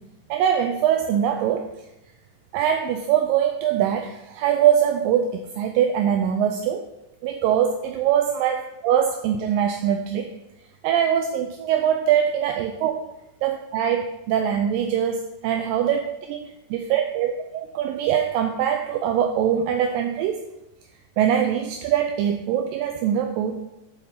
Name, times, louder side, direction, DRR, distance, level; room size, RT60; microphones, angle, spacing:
voice 1, 0.3-1.7 2.5-6.8 7.2-10.3 10.8-13.0 13.4-20.4 21.2-23.6, right 9 dB, 80° right, 5 dB, 2.2 m, -22 dB
11.5 x 4.4 x 4.2 m, 0.91 s
omnidirectional pair, 4.1 m